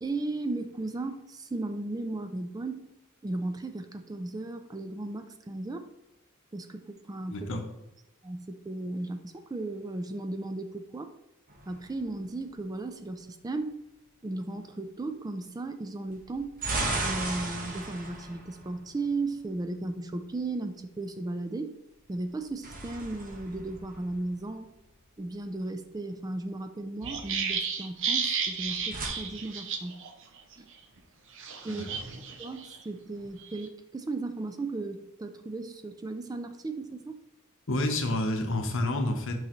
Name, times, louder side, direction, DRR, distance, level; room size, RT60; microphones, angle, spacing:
voice 1, 0.0-2.8 3.2-5.9 6.5-7.5 8.2-11.1 11.7-13.8 14.2-16.5 17.0-21.7 22.1-24.7 25.2-30.0 30.6-30.7 31.6-31.9 32.4-37.2, right 2 dB, 15° right, 8 dB, 0.3 m, -35 dB
voice 2, 7.3-7.6 31.7-31.9 37.7-39.4, left 1 dB, 60° left, 4 dB, 1.0 m, -29 dB
sound 1, 11.5-12.5 16.1-19.4 22.2-24.7 28.5-29.1, right 2 dB, 40° right, 1.1 m, -36 dB
sound 2, 27.0-30.1 30.4-30.5 31.4-32.8 33.2-33.7, right 6 dB, 60° right, 0.8 m, -33 dB
6.2 x 5.5 x 3.1 m, 0.89 s
head